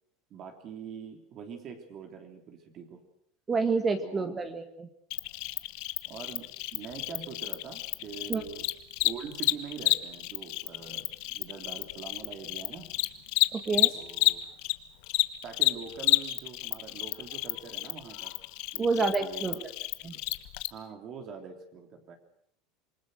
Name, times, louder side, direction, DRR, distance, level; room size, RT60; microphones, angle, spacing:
voice 1, 0.3-3.0 4.0-4.4 6.0-8.7 9.0-13.0 13.9-14.4 15.4-18.3 18.7-19.7 20.0-20.2 20.7-22.2, right 6 dB, 40° right, 4 dB, 3.4 m, -44 dB
voice 2, 3.5-4.9 8.3-8.4 13.5-13.9 18.8-19.6 20.0-20.1, right 4 dB, 20° right, 8 dB, 1.8 m, -28 dB
Cricket, 5.1-14.7 15.0-20.7, left 22 dB, 70° left, 1.2 m, -30 dB
27.5 x 20.5 x 6.5 m, 0.68 s
supercardioid pair, 140°, 0 cm